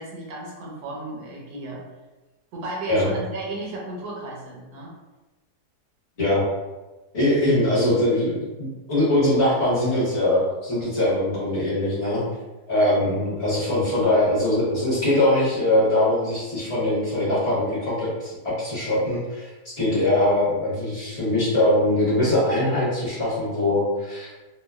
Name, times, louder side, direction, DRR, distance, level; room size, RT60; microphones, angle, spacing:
voice 1, 0.0-1.8 2.5-4.9, right 2 dB, 80° right, -2 dB, 1.1 m, -34 dB
voice 2, 7.1-12.2 12.7-19.5 19.8-24.3, left 1 dB, 50° left, -8 dB, 0.9 m, -22 dB
2.8 x 2.1 x 2.2 m, 1.1 s
omnidirectional pair, 1.7 m